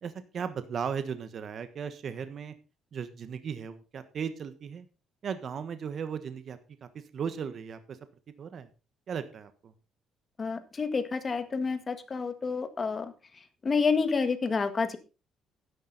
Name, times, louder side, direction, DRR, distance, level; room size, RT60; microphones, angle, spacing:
voice 1, 0.0-2.5 2.9-4.8 5.2-8.0 8.4-8.7 9.1-9.7, right 7 dB, 50° right, 11 dB, 1.3 m, -36 dB
voice 2, 10.4-13.1 13.6-15.0, left 4 dB, 30° left, 10 dB, 1.8 m, -29 dB
12.0 x 10.5 x 4.1 m, 0.31 s
cardioid pair, 105°, 0 cm